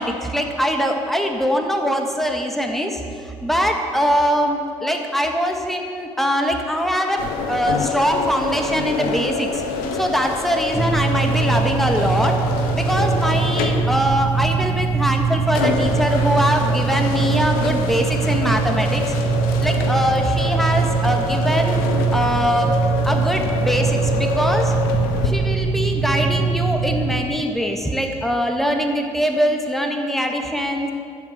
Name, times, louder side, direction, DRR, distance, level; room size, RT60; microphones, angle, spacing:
voice 1, 0.0-3.0 3.4-9.5 10.0-12.4 12.7-19.0 19.6-21.8 22.1-22.7 23.0-24.7 25.2-30.9, equal, ahead, 3 dB, 1.5 m, -22 dB
sound 1, 7.2-25.3, left 4 dB, 70° left, 0.9 m, -27 dB
sound 2, 10.7-27.2, right 5 dB, 35° right, 2.2 m, -22 dB
11.0 x 7.4 x 5.9 m, 2.5 s
hypercardioid pair, 45°, 15 cm